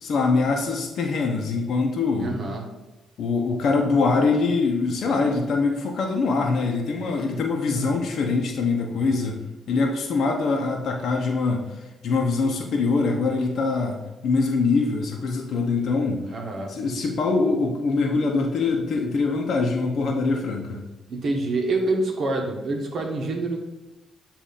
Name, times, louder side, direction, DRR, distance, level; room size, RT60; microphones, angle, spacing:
voice 1, 0.0-2.3 3.2-9.4 9.7-11.6 12.0-16.2 16.7-20.8, left 4 dB, 65° left, 1 dB, 0.8 m, -23 dB
voice 2, 2.2-2.7 16.3-16.7 21.1-23.6, right 2 dB, 55° right, 1 dB, 1.1 m, -26 dB
7.5 x 2.6 x 5.1 m, 1.0 s
cardioid pair, 90°, 0 cm